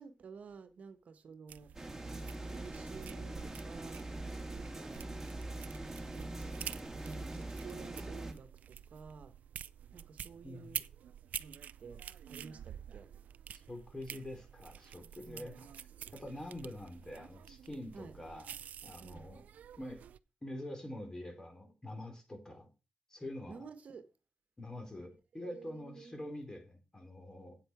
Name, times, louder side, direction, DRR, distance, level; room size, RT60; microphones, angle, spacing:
voice 1, 0.0-1.7 2.5-4.1 4.5-5.0 6.1-6.7 7.0-9.3 9.9-10.8 11.4-13.1 15.3-15.5 17.9-18.1 19.0-19.3 23.5-24.1 25.3-26.2, right 5 dB, 70° right, 1.2 m, -51 dB
sound 1, 1.5-20.2, right 9 dB, 85° right, 0.4 m, -49 dB
sound 2, 1.7-8.3, right 2 dB, 15° right, 2.4 m, -43 dB
voice 2, 10.4-10.8 13.5-15.9 16.1-19.4 19.8-20.0 20.4-22.7 23.1-23.6 24.6-27.6, left 1 dB, 25° left, 3.9 m, -46 dB
8.7 x 8.1 x 4.9 m
cardioid pair, 70°, 3 cm